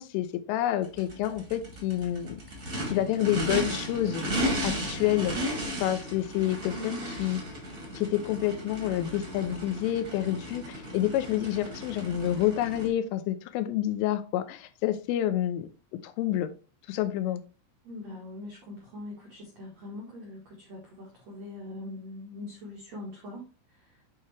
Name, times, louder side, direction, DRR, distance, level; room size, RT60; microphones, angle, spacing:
voice 1, 0.0-2.4 2.9-4.2 4.6-5.4 5.8-7.4 7.9-15.7 16.0-16.5 16.9-17.4, left 12 dB, 85° left, 10 dB, 3.2 m, -28 dB
Race car auto racing / Idling / Accelerating revving vroom, 0.8-12.9, equal, 45° right, 1.0 m, -35 dB
voice 2, 17.8-24.0, left 2 dB, 80° right, -1 dB, 1.5 m, -42 dB
8.4 x 4.7 x 3.3 m, 0.33 s
omnidirectional pair, 5.7 m